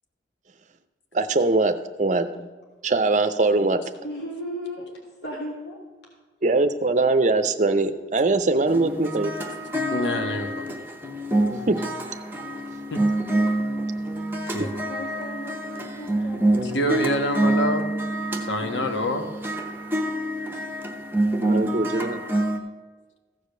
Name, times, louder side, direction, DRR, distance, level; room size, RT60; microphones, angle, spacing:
voice 1, 1.1-2.3 2.8-3.8 6.4-9.3 11.7-11.8 21.5-22.2, right 3 dB, 40° right, 9 dB, 0.6 m, -22 dB
voice 2, 4.0-4.9 5.2-5.8 13.5-13.6 14.6-17.1, equal, 65° left, -2 dB, 2.0 m, -36 dB
sound 1, 8.7-22.6, right 1 dB, 10° right, 0.8 m, -26 dB
voice 3, 9.9-10.7 12.9-13.0 14.5-14.7 16.6-17.9 18.3-19.2, equal, 85° left, 5 dB, 1.3 m, -26 dB
14.5 x 5.1 x 6.6 m, 1.3 s
head